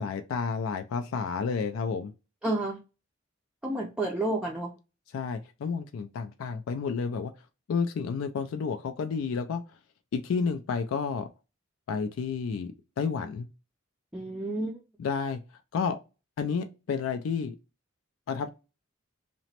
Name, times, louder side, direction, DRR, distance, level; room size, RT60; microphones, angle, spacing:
voice 1, 0.0-2.1 5.1-7.3 7.7-9.6 10.1-11.3 11.9-13.5 15.0-15.4 15.7-16.0 16.4-17.6 18.3-18.5, left 5 dB, 85° left, 0.3 m, -30 dB
voice 2, 2.4-2.8 3.6-4.7 14.1-14.8, right 2 dB, 5° right, 0.4 m, -30 dB
2.9 x 2.1 x 2.8 m
head